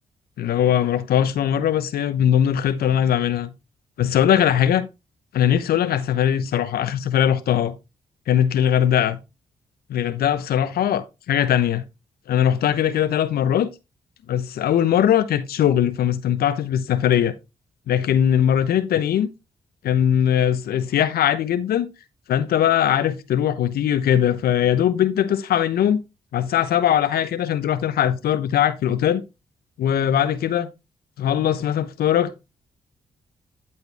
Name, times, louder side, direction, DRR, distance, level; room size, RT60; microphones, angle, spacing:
voice 1, 0.4-3.5 4.0-4.9 5.3-7.7 8.3-9.2 9.9-11.8 12.3-13.7 14.3-17.3 17.9-19.3 19.8-21.9 22.3-26.0 26.3-29.2 29.8-30.7 31.2-32.3, left 10 dB, 70° left, 0.8 m, -20 dB
11.5 x 4.4 x 3.4 m
hypercardioid pair, 40°, 16 cm